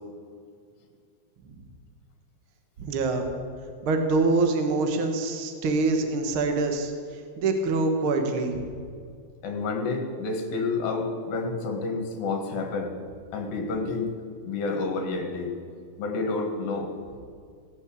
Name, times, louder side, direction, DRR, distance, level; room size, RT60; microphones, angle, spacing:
voice 1, 2.8-3.2 3.8-6.9 7.4-8.8, right 3 dB, 60° right, 5 dB, 1.4 m, -25 dB
voice 2, 9.4-12.9 13.3-14.1 14.5-15.5 16.0-16.9, left 3 dB, 70° left, 4 dB, 3.4 m, -29 dB
17.0 x 8.1 x 8.5 m, 2.2 s
omnidirectional pair, 4.4 m